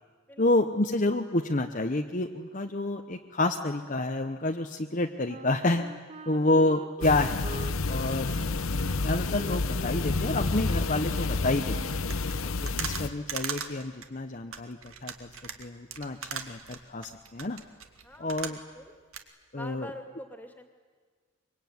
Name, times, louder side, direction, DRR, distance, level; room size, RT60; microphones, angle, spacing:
voice 1, 0.4-5.8 6.3-7.4 7.9-8.3 9.0-11.9 12.4-15.3 15.6-17.6 18.2-18.6 19.5-19.9, left 2 dB, 35° left, 4 dB, 0.9 m, -29 dB
Wind instrument woodwind instrument, 5.3-12.1, right 2 dB, 30° right, 0.7 m, -45 dB
sound 1, 7.0-13.1, left 3 dB, 70° left, 0.9 m, -29 dB
sound 2, 12.0-18.9 19.1-19.2, right 7 dB, 70° right, 2.1 m, -39 dB
voice 2, 18.0-19.0 19.5-20.7, left 1 dB, 10° left, 5 dB, 2.4 m, -46 dB
24.5 x 23.5 x 9.5 m, 1.6 s
head